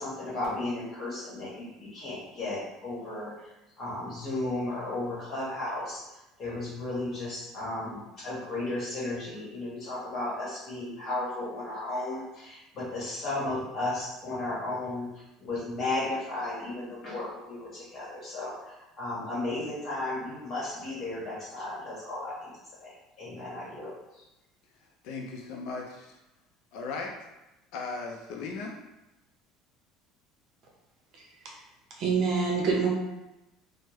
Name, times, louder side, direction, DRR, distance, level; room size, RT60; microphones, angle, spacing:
voice 1, 0.0-3.5 3.8-6.0 6.4-22.5 22.8-24.3, left 2 dB, 30° left, -6 dB, 1.3 m, -34 dB
voice 2, 25.0-26.2 26.7-27.1 27.7-28.7, left 4 dB, 65° left, 1 dB, 0.4 m, -37 dB
voice 3, 32.0-32.9, right 5 dB, 50° right, -2 dB, 0.7 m, -25 dB
3.4 x 2.0 x 3.0 m, 0.96 s
cardioid pair, 160°, 0 cm